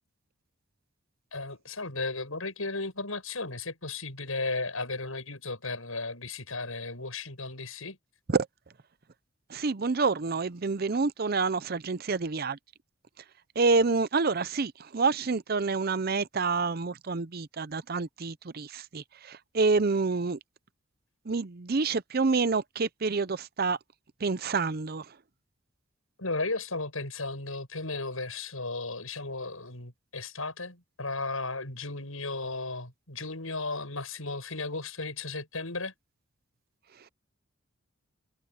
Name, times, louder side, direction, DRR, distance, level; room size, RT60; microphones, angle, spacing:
voice 1, 1.3-8.0 26.2-35.9, left 3 dB, 85° left, 7.4 m, -35 dB
voice 2, 9.5-12.6 13.6-20.4 21.3-23.8 24.2-25.0, right 4 dB, 45° right, 0.6 m, -28 dB
head